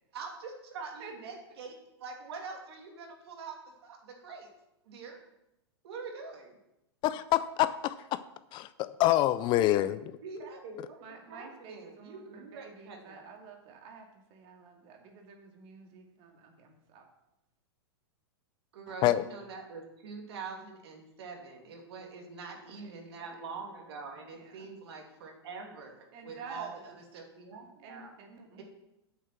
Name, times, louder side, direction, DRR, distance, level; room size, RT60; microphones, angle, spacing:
voice 1, 0.1-3.6 3.8-4.5 4.8-5.2 5.8-6.6 10.2-13.3 18.7-28.1 28.6-28.7, right 4 dB, 65° right, 2 dB, 2.6 m, -44 dB
voice 2, 7.0-8.2 8.5-10.1 19.0-19.2, left 14 dB, 35° left, 15 dB, 0.4 m, -26 dB
voice 3, 11.0-17.0 22.5-23.3 24.3-24.7 26.1-27.0 27.8-28.6, right 5 dB, 45° right, 2 dB, 2.3 m, -50 dB
8.6 x 7.3 x 5.9 m, 0.88 s
hypercardioid pair, 115°, 14 cm